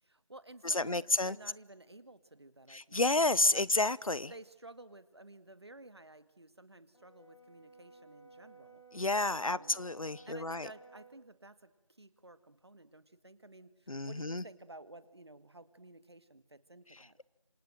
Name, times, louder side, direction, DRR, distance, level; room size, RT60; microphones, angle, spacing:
voice 1, 0.0-3.1 3.5-3.7 4.3-8.8 9.4-9.8 10.3-17.2, right 2 dB, 50° right, 2.0 m, -53 dB
voice 2, 0.6-1.4 2.7-4.3 8.9-10.7 13.9-14.4, left 2 dB, 85° left, 1.0 m, -30 dB
Brass instrument, 6.9-11.2, right 3 dB, 60° left, 3.6 m, -57 dB
27.5 x 26.5 x 7.7 m
figure-of-eight pair, 175°, 17 cm